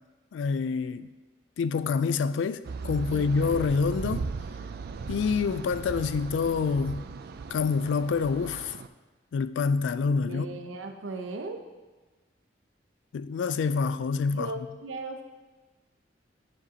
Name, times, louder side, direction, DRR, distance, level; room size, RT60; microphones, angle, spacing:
voice 1, 0.3-1.1 1.6-4.3 5.1-7.1 7.5-8.8 9.3-10.5 13.1-14.5, left 5 dB, 70° left, 0.3 m, -27 dB
sound 1, 2.6-8.9, right 4 dB, 55° right, 0.3 m, -37 dB
voice 2, 3.1-3.5 10.2-11.6 14.3-15.2, right 3 dB, 90° right, 0.7 m, -37 dB
9.6 x 5.0 x 2.8 m
head